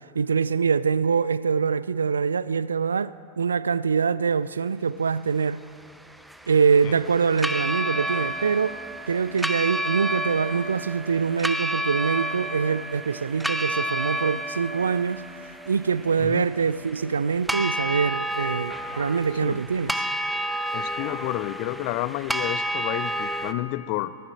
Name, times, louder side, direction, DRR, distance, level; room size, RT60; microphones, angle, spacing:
voice 1, 0.1-5.6 6.5-8.8 9.1-15.2 15.7-19.9, right 6 dB, 70° right, 0.3 m, -24 dB
sound 1, 5.6-23.5, right 1 dB, 5° right, 0.6 m, -31 dB
voice 2, 20.7-24.2, left 17 dB, 45° left, 0.4 m, -30 dB
19.5 x 10.0 x 6.5 m
figure-of-eight pair, 90°, 0 cm